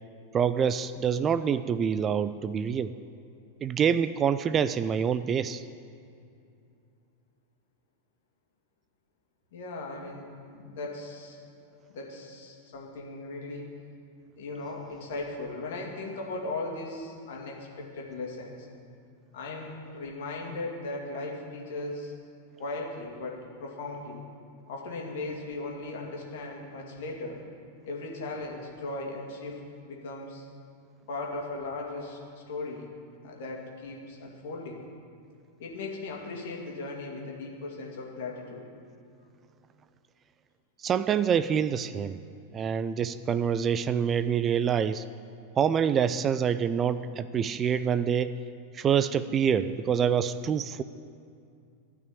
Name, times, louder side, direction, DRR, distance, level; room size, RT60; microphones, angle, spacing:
voice 1, 0.3-2.9 3.6-5.7 40.8-42.2 42.5-45.0 45.6-48.3 48.7-50.8, right 7 dB, 25° right, 13 dB, 0.4 m, -26 dB
voice 2, 9.5-11.4 11.9-13.7 14.4-18.7 19.3-22.1 22.6-24.2 24.7-27.4 27.8-30.5 31.1-32.2 32.5-32.9 33.2-34.8 35.6-38.6, left 2 dB, 55° left, -1 dB, 2.6 m, -37 dB
14.0 x 6.0 x 9.8 m, 2.5 s
figure-of-eight pair, 90°, 0 cm